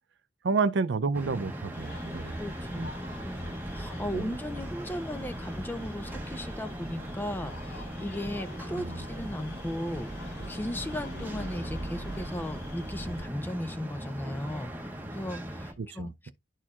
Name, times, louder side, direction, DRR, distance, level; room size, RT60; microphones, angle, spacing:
voice 1, 0.4-2.4 2.8-2.9 4.1-4.3 8.8-9.0 15.8-16.3, right 4 dB, 65° right, 0.4 m, -30 dB
sound 1, 1.1-15.7, equal, 10° right, 0.8 m, -39 dB
sound 2, 1.7-13.3, equal, 75° left, 2.5 m, -43 dB
voice 2, 2.4-16.3, left 1 dB, 10° left, 0.4 m, -37 dB
11.0 x 4.4 x 2.4 m
head